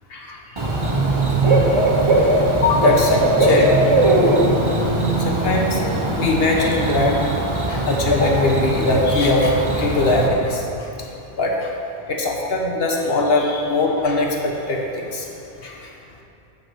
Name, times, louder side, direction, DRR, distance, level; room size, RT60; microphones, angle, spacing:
voice 1, 0.1-0.8 1.4-1.6 2.2-2.3 2.6-3.7 4.0-4.9 5.2-7.4 7.7-11.1 11.4-11.7 12.1-15.3 15.6-15.7, left 2 dB, 70° left, 0 dB, 1.3 m, -21 dB
Bird / Cricket, 0.6-10.3, right 2 dB, 30° right, 0.9 m, -19 dB
7.8 x 5.3 x 7.5 m, 2.8 s
omnidirectional pair, 1.1 m